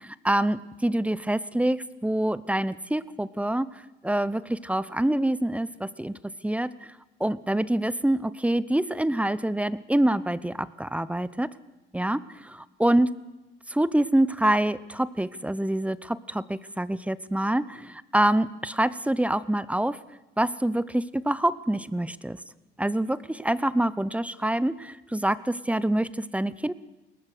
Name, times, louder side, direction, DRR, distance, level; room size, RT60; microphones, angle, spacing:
voice 1, 0.0-6.2 6.4-6.7 7.2-11.5 11.9-13.1 13.7-20.0 20.4-22.4 22.8-26.7, right 1 dB, 5° right, 17 dB, 0.8 m, -26 dB
22.0 x 18.5 x 6.7 m, 1.0 s
cardioid pair, 90°, 20 cm